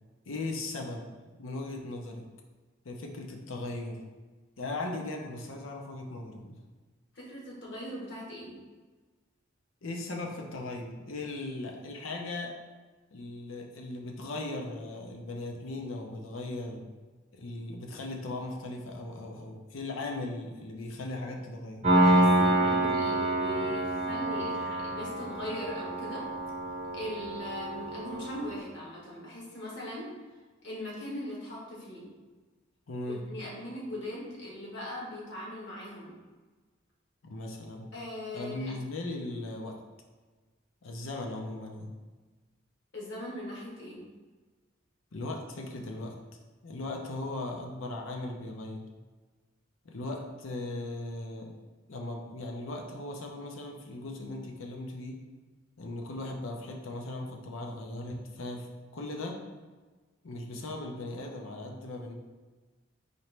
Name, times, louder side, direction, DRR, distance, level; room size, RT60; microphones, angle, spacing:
voice 1, 0.3-1.1 1.4-2.3 2.8-4.0 4.6-6.6 9.8-12.5 13.1-16.9 17.3-21.8 32.9-33.2 37.2-37.9 38.3-39.8 40.8-41.9 45.1-46.2 46.6-48.8 49.8-51.5 51.9-55.2 55.8-59.4 60.2-62.1, left 2 dB, 85° left, 1 dB, 0.6 m, -38 dB
voice 2, 7.1-8.6 21.9-26.2 26.9-30.1 30.6-32.1 33.1-36.1 37.9-38.7 42.9-44.0, left 1 dB, 65° left, -4 dB, 1.3 m, -40 dB
Piano, 21.8-28.6, right 1 dB, 35° right, 0.7 m, -27 dB
4.2 x 2.9 x 3.2 m, 1.3 s
head